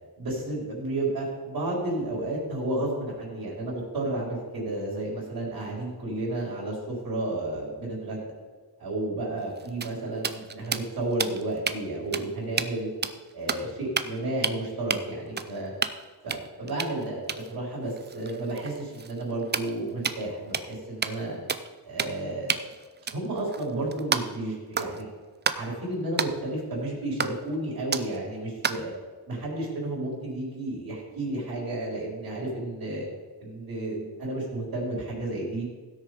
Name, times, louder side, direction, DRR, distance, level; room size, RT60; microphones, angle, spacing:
voice 1, 0.2-8.2 8.8-12.9 13.3-15.7 16.2-21.4 21.8-22.6 23.1-25.1 25.5-28.9 29.3-33.1 33.4-35.7, right 2 dB, 65° right, -5 dB, 4.3 m, -32 dB
sound 1, 9.4-11.8 12.1-12.3 12.5-12.7 13.0-13.7 14.0-14.2 14.4-14.6 14.9-15.0 15.4-16.0 16.3-20.3 20.5-20.7 21.0-21.2 21.5-21.7 22.0-22.2 22.5-24.4 24.7-25.0 25.4-25.6 26.2-26.3 27.2-27.5 27.9-28.2 28.6-28.9, right 6 dB, 25° right, 0.4 m, -31 dB
16.0 x 6.5 x 4.9 m, 1.4 s
wide cardioid pair, 130°, 39 cm